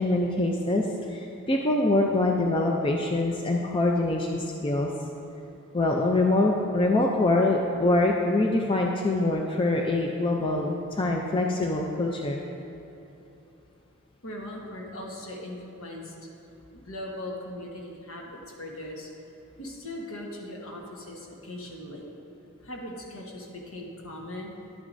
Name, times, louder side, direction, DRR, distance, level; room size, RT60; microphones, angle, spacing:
voice 1, 0.0-4.9 5.7-12.4, left 2 dB, 25° left, 1 dB, 0.4 m, -24 dB
voice 2, 14.2-16.1 16.7-19.1 19.6-22.0 22.6-24.5, left 1 dB, 70° left, -1 dB, 1.3 m, -39 dB
10.5 x 9.3 x 2.6 m, 2.9 s
head